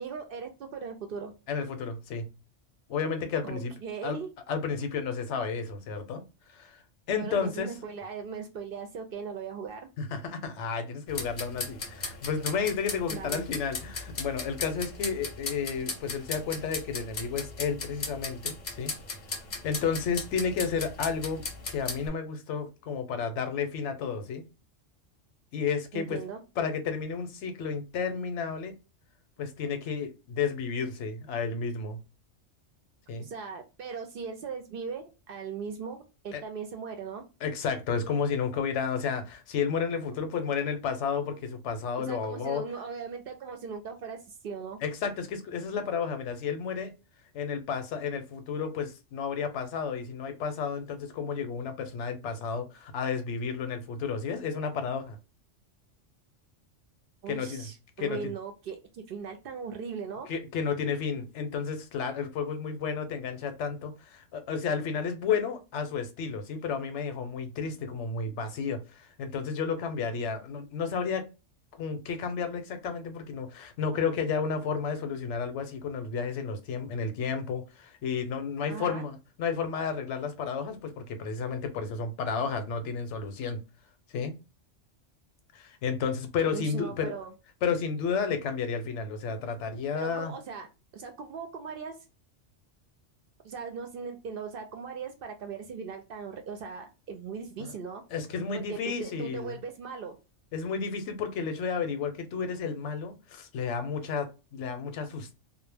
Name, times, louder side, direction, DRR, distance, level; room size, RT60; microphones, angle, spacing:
voice 1, 0.0-1.3 3.4-4.3 7.1-9.9 13.1-13.4 25.9-26.4 33.2-37.2 42.0-44.8 57.2-60.3 78.7-79.0 86.5-87.3 89.9-90.7 90.9-91.9 93.4-98.0 98.5-100.2, right 5 dB, 60° right, 0.6 m, -39 dB
voice 2, 1.5-2.3 2.9-3.7 4.0-4.2 4.5-6.8 7.1-7.7 10.0-18.9 19.6-24.4 25.5-26.2 26.6-28.8 29.4-32.0 33.1-33.3 36.3-36.4 37.4-42.6 44.8-46.9 47.3-55.2 57.3-57.7 58.0-58.2 60.3-71.3 71.8-83.6 84.1-84.3 85.5-87.1 87.6-90.3 97.6-97.7 98.1-99.6 100.5-105.3, left 6 dB, 75° left, 0.9 m, -32 dB
sound 1, 11.1-22.1, left 3 dB, 45° left, 0.6 m, -37 dB
2.1 x 2.1 x 3.2 m
omnidirectional pair, 1.2 m